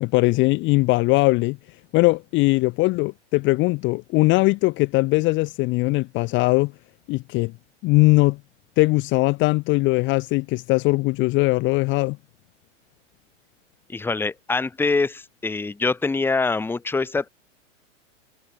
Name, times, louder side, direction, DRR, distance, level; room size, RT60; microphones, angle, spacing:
voice 1, 0.0-1.6 1.9-6.7 7.1-7.5 7.8-8.4 8.8-12.2, left 23 dB, 30° left, 0.6 m, -20 dB
voice 2, 13.9-17.3, left 3 dB, 5° left, 0.8 m, -24 dB
hypercardioid pair, 105°, 37 cm